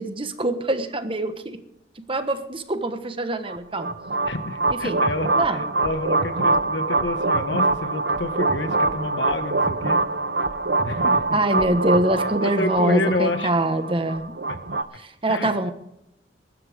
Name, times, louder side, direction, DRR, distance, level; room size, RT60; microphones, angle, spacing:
voice 1, 0.0-1.6 2.0-3.9 4.8-5.0 5.4-5.7 11.3-14.3 15.0-15.7, right 1 dB, 30° right, 8 dB, 1.3 m, -24 dB
sound 1, 3.5-14.8, right 3 dB, 65° right, 0.9 m, -24 dB
voice 2, 4.2-10.0 10.8-11.3 12.4-13.6 14.5-14.6 15.3-15.5, left 2 dB, 85° left, 8 dB, 1.7 m, -28 dB
21.0 x 12.0 x 3.6 m, 0.80 s
head